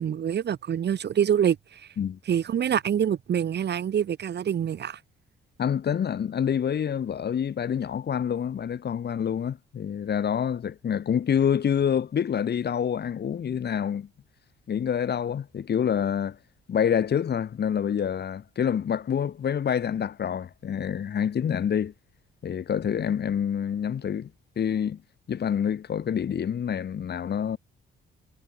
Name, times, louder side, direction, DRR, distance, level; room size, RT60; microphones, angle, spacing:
voice 1, 0.0-1.8 2.3-5.0, right 9 dB, 60° right, 3.4 m, -25 dB
voice 2, 5.6-14.1 14.7-16.4 16.7-21.9 22.4-24.3 24.6-25.0 25.3-27.6, left 8 dB, 55° left, 7.4 m, -27 dB
cardioid pair, 90°, 20 cm